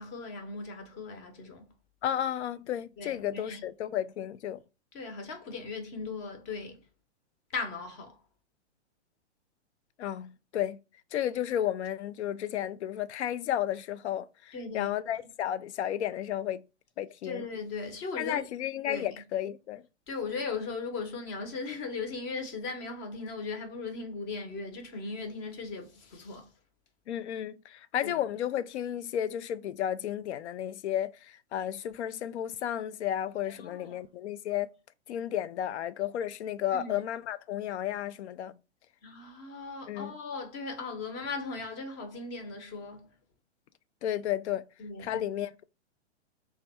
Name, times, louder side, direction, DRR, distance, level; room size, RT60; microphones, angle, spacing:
voice 1, 0.0-1.7 3.0-3.6 4.9-6.8 7.5-8.2 14.5-14.9 17.2-18.4 18.9-19.2 20.1-26.5 28.0-28.2 33.5-34.0 36.7-37.0 39.0-43.1 44.8-45.2, left 4 dB, 30° left, 0.8 m, -38 dB
voice 2, 2.0-4.6 10.0-10.8 11.1-16.6 17.0-17.5 18.2-19.8 27.1-34.7 35.1-38.5 39.9-40.1 44.0-44.6 45.0-45.6, left 11 dB, 70° left, 0.5 m, -33 dB
3.3 x 2.3 x 4.1 m
hypercardioid pair, 135°, 35 cm